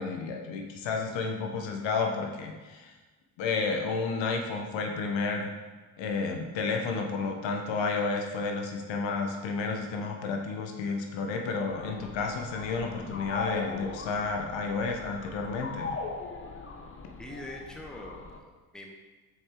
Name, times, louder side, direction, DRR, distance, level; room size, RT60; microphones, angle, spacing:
voice 1, 0.0-2.9 3.4-5.5 6.0-16.0, left 4 dB, 70° left, 3 dB, 1.0 m, -31 dB
sound 1, 11.7-18.4, left 4 dB, 25° left, 0.8 m, -40 dB
voice 2, 17.2-18.9, left 1 dB, ahead, 0 dB, 1.0 m, -43 dB
6.3 x 4.3 x 3.7 m, 1.3 s
supercardioid pair, 70°, 47 cm